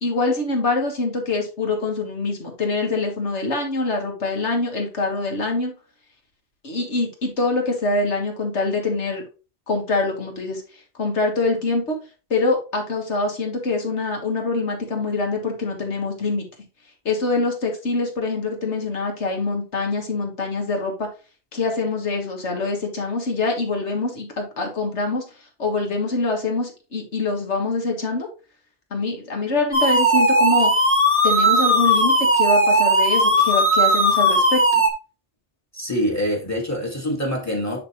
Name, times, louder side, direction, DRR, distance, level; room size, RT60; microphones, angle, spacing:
voice 1, 0.0-5.7 6.6-9.2 9.7-10.6 11.0-12.0 12.3-16.5 17.1-21.1 21.5-25.2 25.6-28.3 28.9-30.7 31.2-34.6, left 3 dB, 75° left, 2.0 m, -24 dB
sound 1, 29.7-34.9, right 1 dB, 10° right, 1.2 m, -17 dB
voice 2, 35.7-37.8, equal, 15° left, 1.8 m, -25 dB
10.5 x 3.5 x 3.1 m
omnidirectional pair, 1.2 m